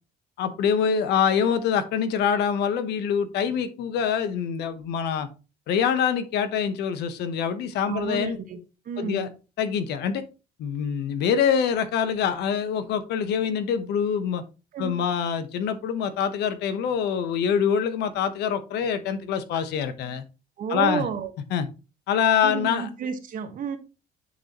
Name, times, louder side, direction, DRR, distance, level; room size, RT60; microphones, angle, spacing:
voice 1, 0.4-5.3 5.7-8.4 9.0-9.3 9.6-10.2 10.6-14.4 14.8-20.2 20.7-21.0 21.5-21.7 22.1-22.9, left 7 dB, 80° left, 11 dB, 1.0 m, -25 dB
voice 2, 7.9-8.6 8.9-9.3 14.7-15.0 20.6-21.3 22.4-23.8, right 7 dB, 55° right, 8 dB, 1.3 m, -30 dB
9.5 x 4.0 x 3.0 m, 0.31 s
cardioid pair, 110°, 17 cm